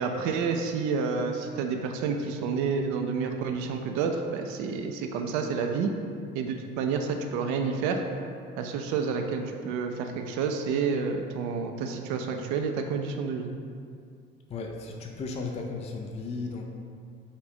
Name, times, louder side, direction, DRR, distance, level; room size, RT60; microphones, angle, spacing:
voice 1, 0.0-5.9 6.3-8.0 8.6-13.5, right 5 dB, 55° right, 4 dB, 0.5 m, -29 dB
voice 2, 14.5-16.6, left 4 dB, 20° left, 2 dB, 0.4 m, -35 dB
5.2 x 2.5 x 3.7 m, 2.3 s
figure-of-eight pair, 50°, 36 cm